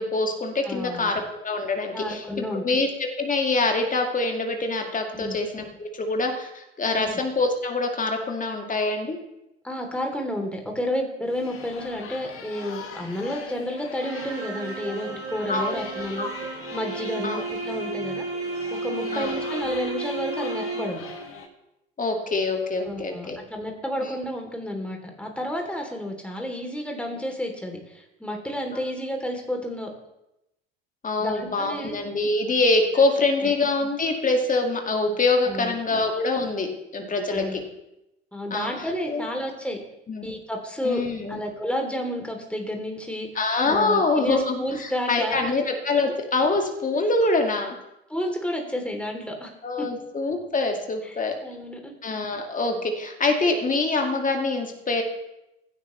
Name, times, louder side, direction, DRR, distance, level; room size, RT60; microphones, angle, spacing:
voice 1, 0.0-9.2 15.5-15.8 16.2-16.3 17.2-17.4 19.1-19.4 22.0-23.4 24.0-24.1 31.0-37.6 38.5-39.2 40.1-40.3 40.8-41.4 43.4-47.8 49.6-51.3 52.0-55.0, left 3 dB, 25° left, 3 dB, 2.2 m, -25 dB
voice 2, 0.6-1.2 1.9-2.6 5.1-5.4 7.0-7.1 9.6-21.0 22.8-29.9 31.2-32.0 33.4-33.5 35.5-36.0 37.3-37.6 38.3-39.8 40.2-41.0 41.3-43.3 43.7-45.4 48.1-49.5 49.8-49.9 51.0-51.9, left 1 dB, 5° left, 2 dB, 3.3 m, -31 dB
sound 1, 11.3-21.5, left 5 dB, 40° left, 2.2 m, -42 dB
sound 2, 14.0-21.2, right 3 dB, 45° right, 5.7 m, -33 dB
16.5 x 11.5 x 3.3 m, 0.90 s
figure-of-eight pair, 65°, 32 cm